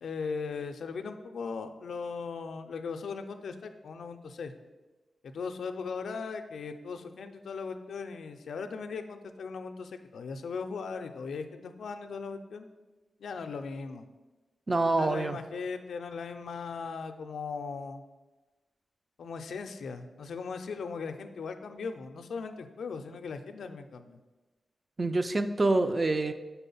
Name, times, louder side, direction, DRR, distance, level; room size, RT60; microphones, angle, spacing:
voice 1, 0.0-4.5 5.2-12.7 13.2-14.1 14.9-18.0 19.2-24.2, left 5 dB, 90° left, 7 dB, 0.4 m, -38 dB
voice 2, 14.7-15.4 25.0-26.3, right 2 dB, 35° right, 9 dB, 0.4 m, -26 dB
4.4 x 4.1 x 5.4 m, 1.2 s
cardioid pair, 75°, 0 cm